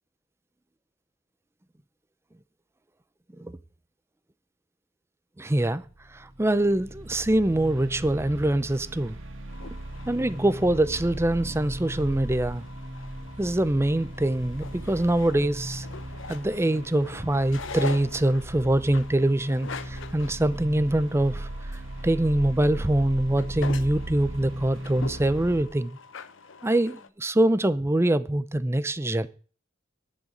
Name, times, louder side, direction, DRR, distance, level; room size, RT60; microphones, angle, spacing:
voice 1, 5.4-5.9 6.1-9.2 10.1-12.6 13.4-15.9 16.3-26.0 26.6-29.3, right 1 dB, 15° right, 0.6 m, -24 dB
sound 1, 5.9-25.6, right 1 dB, 85° right, 2.0 m, -37 dB
sound 2, 9.5-27.1, left 4 dB, 80° left, 0.7 m, -43 dB
10.5 x 6.5 x 8.9 m
head